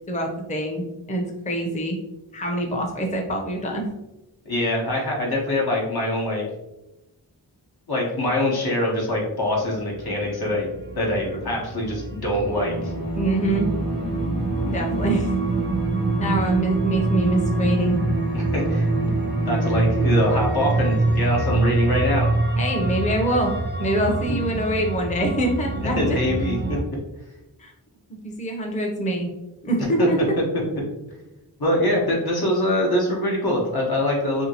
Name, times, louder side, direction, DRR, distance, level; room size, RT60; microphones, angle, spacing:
voice 1, 0.1-2.0 2.3-3.9 13.1-13.7 14.7-15.3 16.2-18.0 22.5-23.5 23.8-26.2 27.6-27.7 28.1-29.3 29.6-30.4, right 1 dB, 20° left, 2 dB, 0.5 m, -25 dB
voice 2, 4.4-6.4 7.9-10.7 11.0-12.9 18.3-19.1 19.5-22.3 26.0-26.8 30.0-30.1 31.6-34.5, left 1 dB, 70° left, -2 dB, 1.0 m, -23 dB
sound 1, 9.5-26.8, right 2 dB, 30° right, 0.4 m, -26 dB
Bowed string instrument, 12.4-21.0, right 2 dB, 40° left, 0.9 m, -29 dB
2.8 x 2.6 x 2.7 m, 0.94 s
wide cardioid pair, 45°, 39 cm